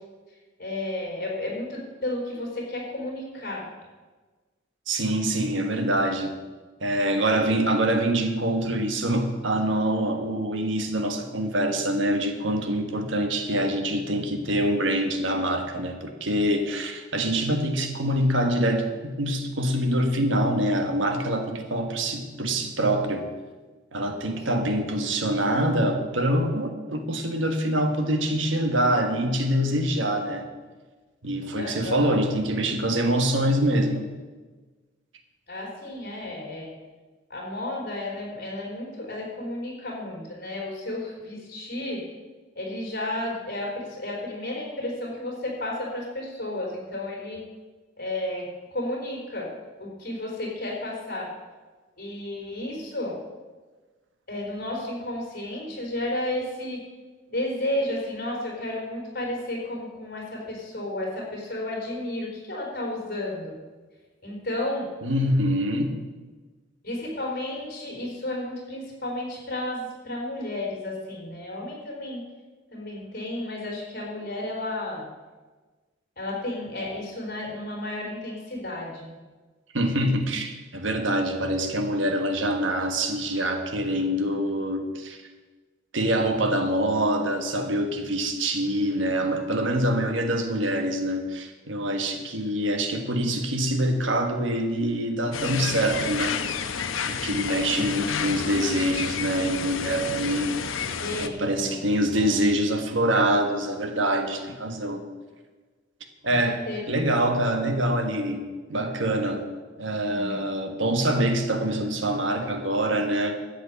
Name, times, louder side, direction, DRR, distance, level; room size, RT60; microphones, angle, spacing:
voice 1, 0.6-3.6 24.3-24.4 31.6-32.1 35.5-36.7 37.3-42.0 42.6-47.4 48.0-49.5 49.8-51.3 52.0-53.2 54.3-56.8 57.3-63.5 64.2-64.9 66.8-72.2 72.7-75.0 76.2-79.1 97.7-97.8 101.0-101.8 102.1-102.4 106.2-106.4 106.7-106.8 110.0-110.4, left 1 dB, 50° left, -2 dB, 4.1 m, -32 dB
voice 2, 4.9-6.3 6.8-23.3 23.9-30.5 31.2-34.0 65.0-66.0 79.7-85.2 85.9-96.4 97.1-100.8 101.2-105.0 106.2-108.4 108.7-109.4 109.8-113.5, right 1 dB, 70° right, 6 dB, 1.4 m, -25 dB
sound 1, 95.3-101.3, left 6 dB, 85° left, 0.8 m, -30 dB
12.5 x 8.2 x 7.1 m, 1.3 s
head